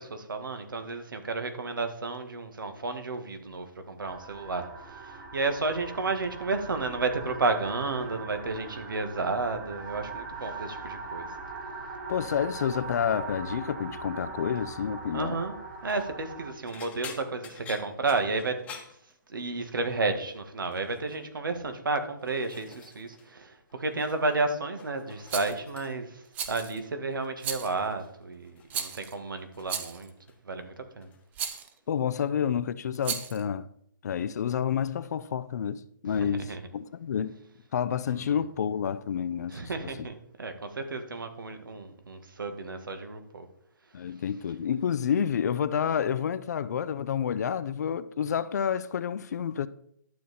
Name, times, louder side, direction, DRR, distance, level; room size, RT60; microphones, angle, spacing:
voice 1, 0.0-11.3 15.1-15.6 15.8-18.6 19.3-30.1 30.4-31.1 36.0-36.6 38.1-38.2 39.5-43.5, right 3 dB, 75° right, 1.8 m, -32 dB
sound 1, 4.0-16.5, right 3 dB, 40° right, 2.7 m, -41 dB
voice 2, 12.1-15.4 31.9-33.7 34.0-37.4 37.7-40.1 43.9-49.7, left 8 dB, 55° left, 0.6 m, -29 dB
sound 2, 15.7-16.1 16.7-19.7 20.0-20.3 20.7-21.2 21.9-23.3 23.5-24.4 24.7-26.2 27.1-27.4 27.8-29.8 30.1-30.6 31.0-31.2 32.5-32.6, left 6 dB, 10° left, 1.2 m, -49 dB
Rattle, 25.3-25.6 26.3-26.8 27.4-27.8 28.7-29.1 29.7-30.1 31.4-31.7 33.0-33.4, right 7 dB, 15° right, 0.7 m, -34 dB
11.5 x 7.3 x 4.2 m
hypercardioid pair, 145°, 11 cm